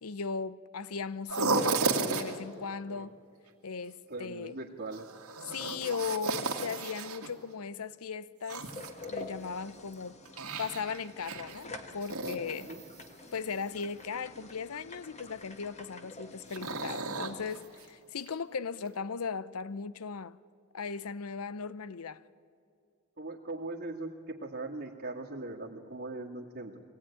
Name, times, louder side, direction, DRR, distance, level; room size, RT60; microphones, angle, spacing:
voice 1, 0.0-1.7 2.1-3.1 3.6-4.5 5.5-8.7 9.1-10.1 10.6-12.7 13.3-20.4 20.7-22.2, left 5 dB, 85° left, 0.7 m, -37 dB
sound 1, 1.3-2.4 4.9-7.3 8.4-9.5 9.9-11.6 12.0-13.1 16.5-17.9 18.3-18.4 18.8-18.9, right 3 dB, 85° right, 2.2 m, -33 dB
voice 2, 4.1-5.1 12.5-12.8 23.2-26.8, right 2 dB, 50° right, 1.9 m, -40 dB
sound 2, 8.6-17.5, left 2 dB, 30° left, 1.7 m, -48 dB
24.0 x 17.5 x 9.8 m
head